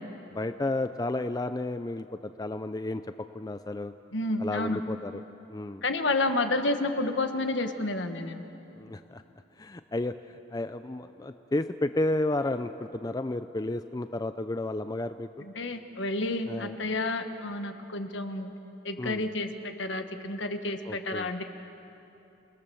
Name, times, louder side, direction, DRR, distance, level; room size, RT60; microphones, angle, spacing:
voice 1, 0.3-3.0 3.3-3.9 4.4-5.2 5.5-5.8 8.8-9.2 9.6-10.2 10.5-15.5 16.5-16.8 19.0-19.3 20.8-21.3, left 2 dB, 20° left, 10 dB, 0.4 m, -32 dB
voice 2, 4.1-4.8 5.8-8.5 15.4-18.5 18.8-21.4, left 2 dB, 60° left, 7 dB, 1.4 m, -30 dB
29.0 x 19.5 x 7.0 m, 3.0 s
head